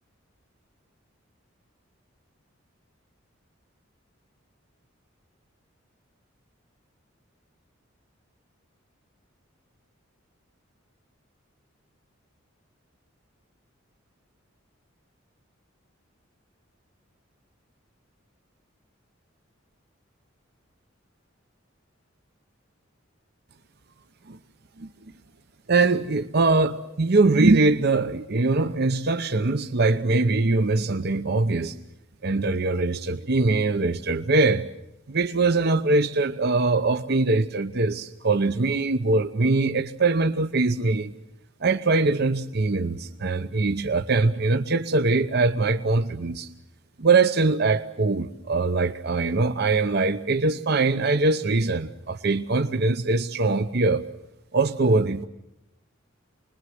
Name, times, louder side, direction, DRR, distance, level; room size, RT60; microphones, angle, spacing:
voice 1, 25.7-31.7 32.2-34.7 35.1-41.1 41.6-46.5 47.0-54.0 54.5-55.2, right 3 dB, 55° right, 7 dB, 0.8 m, -22 dB
26.0 x 21.5 x 7.8 m, 0.87 s
head